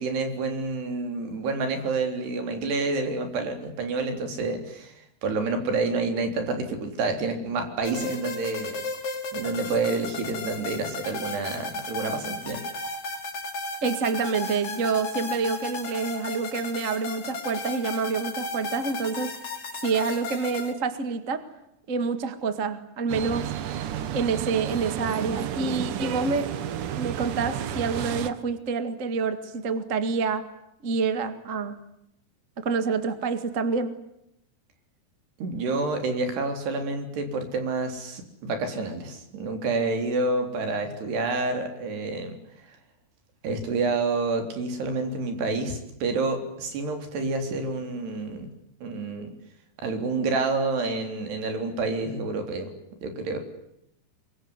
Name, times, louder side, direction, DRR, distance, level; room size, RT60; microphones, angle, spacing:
voice 1, 0.0-4.9 5.2-8.8 9.3-12.6 35.4-42.3 43.4-48.5 48.8-49.3 49.8-52.7 53.0-53.4, right 3 dB, 80° right, 6 dB, 5.7 m, -28 dB
sound 1, 7.8-20.7, left 3 dB, 60° left, 4.9 m, -35 dB
voice 2, 13.8-19.3 19.8-21.4 21.9-23.5 24.1-26.5 26.9-30.5 30.8-31.8 32.6-33.9, right 5 dB, 35° right, 11 dB, 1.2 m, -27 dB
sound 2, 23.1-28.3, right 10 dB, 65° right, 2.4 m, -31 dB
25.0 x 23.0 x 9.8 m, 0.80 s
omnidirectional pair, 4.7 m